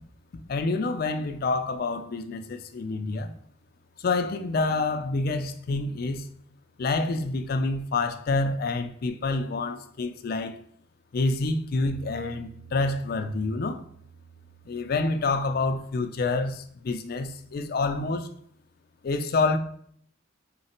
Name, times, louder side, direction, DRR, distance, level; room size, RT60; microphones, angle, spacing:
voice 1, 0.5-3.3 4.0-6.3 6.8-10.6 11.1-13.8 14.7-18.3 19.0-19.6, left 3 dB, 50° left, 0.4 m, -27 dB
sound 1, 11.8-18.1, right 5 dB, 65° right, 0.6 m, -51 dB
3.9 x 3.2 x 4.3 m
head